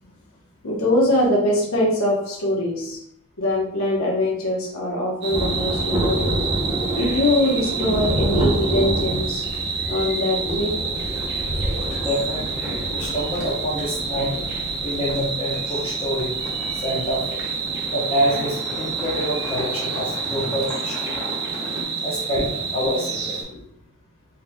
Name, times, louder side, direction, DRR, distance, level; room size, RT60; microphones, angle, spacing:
voice 1, 0.6-3.0 3.4-6.5 6.9-9.4 9.9-11.0 11.8-11.9 22.3-22.4 23.5-23.6, left 1 dB, 75° left, -3 dB, 0.9 m, -22 dB
sound 1, 5.2-23.4, right 5 dB, 50° right, 0.6 m, -29 dB
Thunder, 5.3-17.3 17.6-17.7, right 1 dB, 20° right, 0.8 m, -28 dB
sound 2, 11.1-21.8, equal, 5° left, 1.5 m, -37 dB
voice 2, 12.0-14.4 14.8-16.4 16.7-17.4 17.9-21.2 22.0-23.4, equal, 25° left, -8 dB, 0.9 m, -26 dB
4.2 x 4.0 x 2.2 m, 0.74 s
head